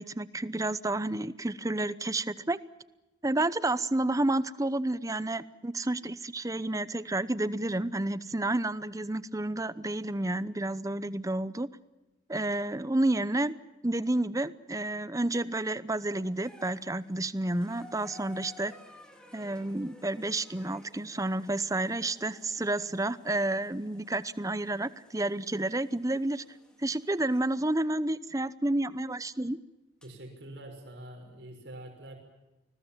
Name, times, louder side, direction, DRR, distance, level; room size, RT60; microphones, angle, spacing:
voice 1, 0.0-2.6 3.2-11.7 12.3-13.5 13.8-18.7 19.3-26.4 26.8-29.6, right 2 dB, 20° right, 16 dB, 0.8 m, -30 dB
sound 1, 15.3-15.8 16.3-27.5 28.7-28.8 30.0-30.1, left 2 dB, 5° left, 3.7 m, -55 dB
voice 2, 30.0-32.2, right 1 dB, 65° right, 2 dB, 6.1 m, -45 dB
29.5 x 21.0 x 7.4 m, 0.99 s
head